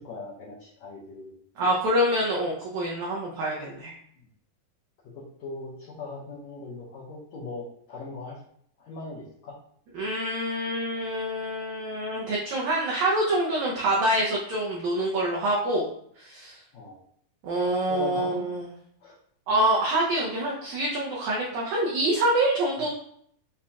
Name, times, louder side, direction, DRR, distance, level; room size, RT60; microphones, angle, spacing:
voice 1, 0.0-1.3 5.1-8.4 8.8-9.6 16.7-17.0 17.9-18.5 19.0-19.2, left 3 dB, 70° left, -7 dB, 1.7 m, -39 dB
voice 2, 1.6-3.9 9.9-16.6 17.4-18.7 19.5-22.9, right 1 dB, 90° right, -4 dB, 1.6 m, -26 dB
7.2 x 2.8 x 2.3 m, 0.66 s
omnidirectional pair, 4.2 m